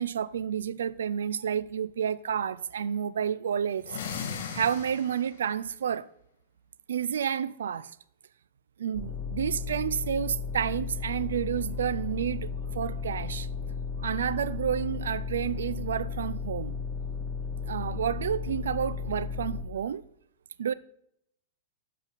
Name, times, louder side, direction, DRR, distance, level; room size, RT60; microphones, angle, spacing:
voice 1, 0.0-4.0 4.5-6.1 6.9-7.9 8.8-12.5 12.7-13.5 14.0-16.8 17.7-20.0 20.6-20.7, right 8 dB, 85° right, 0.4 m, -30 dB
sound 1, 3.8-5.4, left 7 dB, 70° left, 1.6 m, -37 dB
sound 2, 8.9-19.6, left 5 dB, 35° left, 2.1 m, -34 dB
7.2 x 5.5 x 4.0 m
hypercardioid pair, 120°, 0 cm